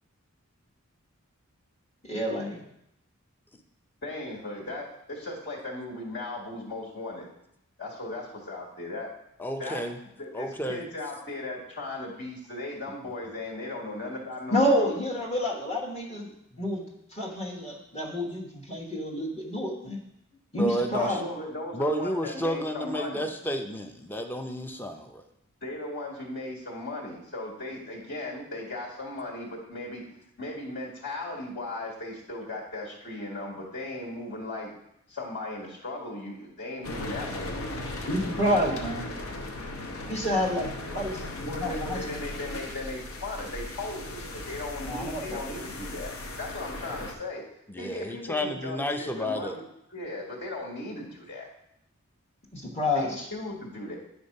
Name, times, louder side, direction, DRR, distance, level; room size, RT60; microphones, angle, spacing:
voice 1, 2.0-2.6 14.5-16.3 16.6-20.0 20.5-21.2 38.1-39.1 40.1-41.2 41.5-42.0 44.8-45.4 52.5-53.3, left 1 dB, 30° left, -2 dB, 1.2 m, -29 dB
voice 2, 4.0-7.3 7.8-9.1 9.6-9.9 10.2-14.9 21.2-23.3 25.6-30.0 30.4-34.7 35.1-37.9 41.4-47.4 47.8-49.6 49.9-51.5 52.9-54.0, left 2 dB, 55° left, -3 dB, 1.7 m, -37 dB
voice 3, 9.4-10.0 10.3-10.8 16.5-16.6 20.6-21.2 21.7-25.2 47.7-49.6, equal, 10° left, 5 dB, 0.5 m, -31 dB
sound 1, 36.8-47.1, left 2 dB, 80° left, 0.9 m, -37 dB
9.5 x 3.5 x 5.4 m, 0.79 s
head